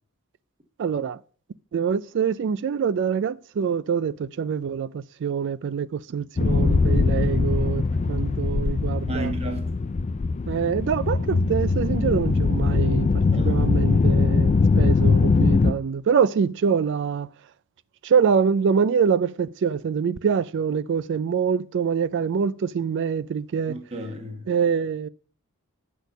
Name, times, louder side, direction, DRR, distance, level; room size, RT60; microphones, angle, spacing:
voice 1, 0.8-1.2 1.7-9.3 10.5-13.1 13.4-17.3 18.0-23.8 24.5-25.1, right 6 dB, 55° right, 0.3 m, -25 dB
sound 1, 6.4-15.7, left 4 dB, 30° left, 0.3 m, -21 dB
voice 2, 9.1-9.7 13.3-13.7 23.7-24.5, right 1 dB, 30° right, 1.1 m, -33 dB
8.1 x 6.3 x 5.2 m
head